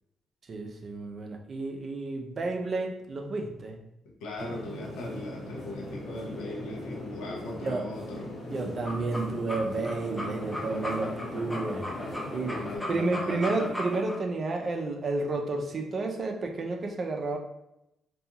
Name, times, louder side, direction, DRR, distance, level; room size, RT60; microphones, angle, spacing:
voice 1, 0.5-3.8 7.6-7.9 8.5-11.9 12.3-12.6 12.9-17.4, right 3 dB, 45° right, 3 dB, 0.4 m, -31 dB
voice 2, 4.2-8.3 12.5-13.6, left 2 dB, 90° left, -2 dB, 0.5 m, -39 dB
sound 1, 4.4-12.8, left 1 dB, 55° left, 1.0 m, -39 dB
sound 2, 8.7-14.2, left 1 dB, ahead, 0.6 m, -36 dB
2.4 x 2.3 x 2.7 m, 0.85 s
cardioid pair, 95°, 0 cm